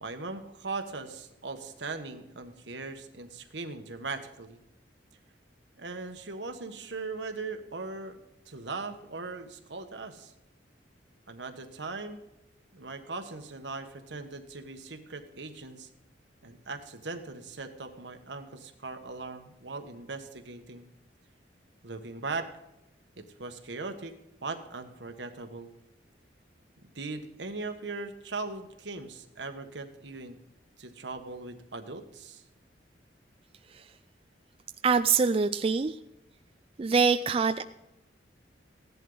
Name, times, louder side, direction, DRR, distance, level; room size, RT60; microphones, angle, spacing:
voice 1, 0.0-4.6 5.8-10.3 11.3-12.2 12.7-15.9 16.4-20.8 21.8-22.5 23.2-24.1 24.4-25.7 26.9-30.4 30.8-32.4, right 3 dB, 75° right, 7 dB, 1.3 m, -39 dB
voice 2, 34.8-36.0 36.8-37.6, right 5 dB, 30° right, 10 dB, 0.4 m, -24 dB
16.0 x 11.0 x 4.0 m, 0.90 s
head